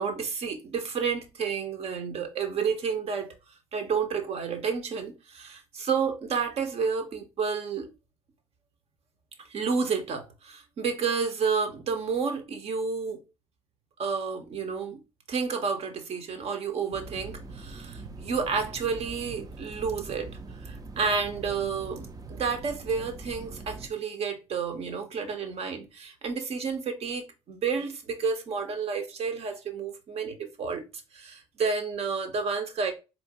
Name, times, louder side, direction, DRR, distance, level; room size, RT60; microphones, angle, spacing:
voice 1, 0.0-3.3 3.7-7.9 9.5-13.2 14.0-15.0 15.3-20.3 20.6-30.8 31.1-32.9, right 5 dB, 55° right, 1.0 m, -30 dB
sound 1, 16.9-23.9, right 3 dB, 30° right, 0.6 m, -42 dB
4.2 x 2.7 x 2.8 m
hypercardioid pair, 55°, 13 cm